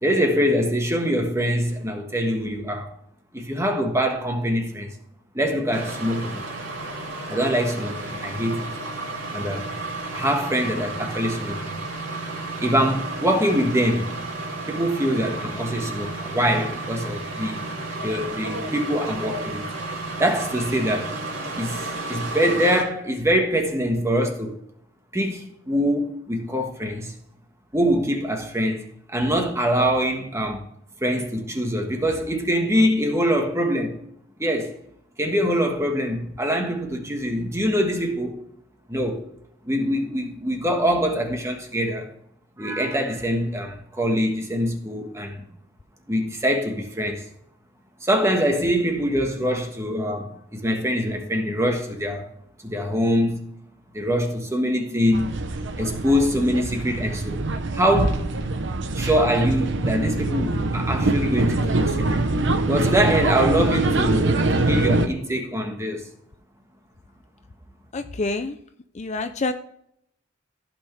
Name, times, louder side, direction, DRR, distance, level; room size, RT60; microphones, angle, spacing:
voice 1, 0.0-2.9 3.3-4.9 5.3-6.4 7.3-8.7 9.3-9.7 10.1-11.6 12.6-14.3 14.7-17.6 18.0-19.7 20.2-21.2 21.5-24.6 25.1-27.1 27.7-30.6 31.0-34.0 34.4-34.8 35.2-38.4 38.9-39.3 39.6-42.1 42.6-45.4 46.1-47.3 48.0-52.3 52.6-53.4 53.9-55.3 55.8-57.4 57.7-58.3 58.9-62.3 62.7-66.1, equal, 15° right, 1.5 m, -24 dB
sound 1, 5.7-22.8, right 2 dB, 90° right, 2.7 m, -32 dB
sound 2, 55.1-65.1, right 2 dB, 65° right, 0.9 m, -24 dB
voice 2, 67.9-68.6 68.9-69.5, left 3 dB, 35° left, 0.5 m, -27 dB
15.0 x 6.0 x 3.4 m
head